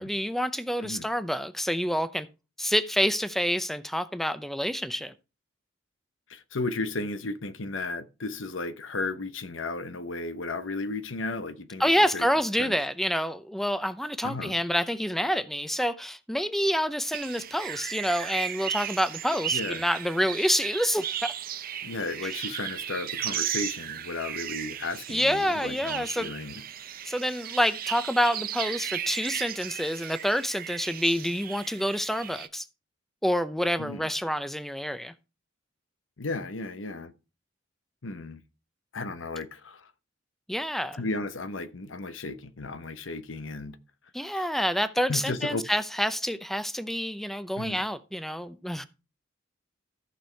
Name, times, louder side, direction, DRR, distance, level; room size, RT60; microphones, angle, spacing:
voice 1, 0.0-2.3 2.6-5.1 11.8-21.3 22.4-22.5 25.1-26.3 27.0-32.7 33.2-35.1 40.5-41.0 44.1-48.9, equal, ahead, 0.6 m, -27 dB
voice 2, 6.3-12.2 12.6-12.8 14.2-14.5 19.5-19.8 21.8-26.6 33.8-34.1 36.2-37.1 38.0-38.4 38.9-39.9 41.0-43.8 44.2-44.5 45.1-45.7 47.6-47.8, left 3 dB, 90° left, 1.0 m, -34 dB
sound 1, 17.1-32.5, right 10 dB, 50° right, 0.7 m, -35 dB
14.5 x 6.1 x 4.6 m
head